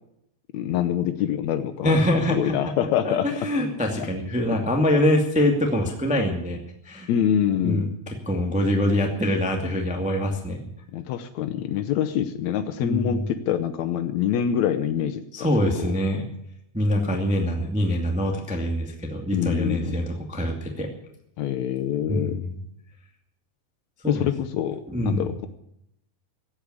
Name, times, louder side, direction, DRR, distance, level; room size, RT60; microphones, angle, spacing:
voice 1, 0.5-1.9 2.3-3.3 4.0-4.1 7.1-7.9 10.9-15.9 19.3-19.9 21.4-22.4 24.1-25.5, left 10 dB, 90° left, 10 dB, 1.5 m, -25 dB
voice 2, 1.8-2.5 3.0-6.6 6.8-7.1 7.6-10.6 12.8-13.2 15.3-16.2 16.7-20.9 22.1-22.6 24.0-24.2 24.9-25.3, left 1 dB, 5° right, 2 dB, 1.1 m, -24 dB
15.5 x 8.4 x 9.7 m, 0.77 s
omnidirectional pair, 4.4 m